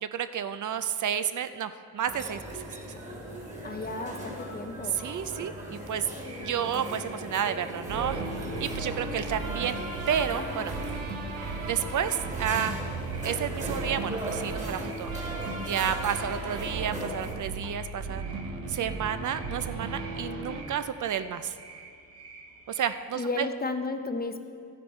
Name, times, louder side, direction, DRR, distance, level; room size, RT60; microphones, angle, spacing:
voice 1, 0.0-2.8 4.8-6.1 6.4-8.2 8.6-10.7 11.7-12.8 13.2-15.1 15.6-18.3 18.7-21.6 22.7-23.5, right 8 dB, 60° right, 11 dB, 0.5 m, -31 dB
sound 1, 2.1-17.3, equal, 20° right, 1.8 m, -39 dB
voice 2, 3.6-5.0 6.6-6.9 23.2-24.4, left 3 dB, 25° left, 8 dB, 0.6 m, -33 dB
sound 2, 6.1-23.1, right 3 dB, 40° right, 1.4 m, -50 dB
sound 3, 7.9-20.6, right 3 dB, 80° right, 1.1 m, -36 dB
13.0 x 10.0 x 4.3 m, 2.3 s
wide cardioid pair, 130°, 35 cm